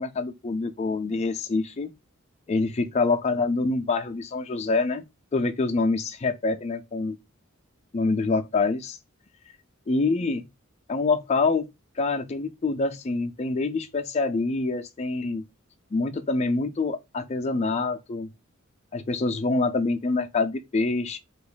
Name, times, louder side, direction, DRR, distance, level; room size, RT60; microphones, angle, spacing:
voice 1, 0.0-1.9 2.5-5.0 5.3-7.2 7.9-9.0 9.9-10.4 10.9-11.7 12.0-15.4 15.9-18.3 18.9-21.2, left 3 dB, 30° left, 0.4 m, -26 dB
2.9 x 2.4 x 3.8 m
head